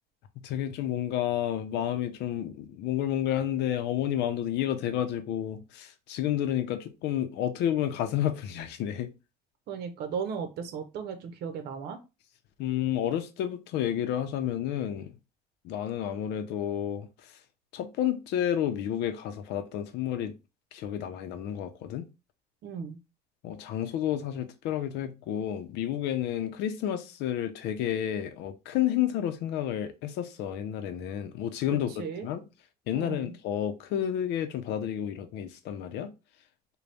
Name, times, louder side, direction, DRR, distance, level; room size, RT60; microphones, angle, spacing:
voice 1, 0.4-9.1 12.6-15.1 15.6-17.1 17.7-20.3 20.7-22.1 23.4-31.9 32.2-32.4 32.9-36.1, left 11 dB, 85° left, 0.6 m, -30 dB
voice 2, 9.7-12.0 22.6-23.0 32.0-32.3 32.9-33.3, right 6 dB, 75° right, 0.8 m, -36 dB
3.9 x 2.3 x 3.4 m
cardioid pair, 110°, 17 cm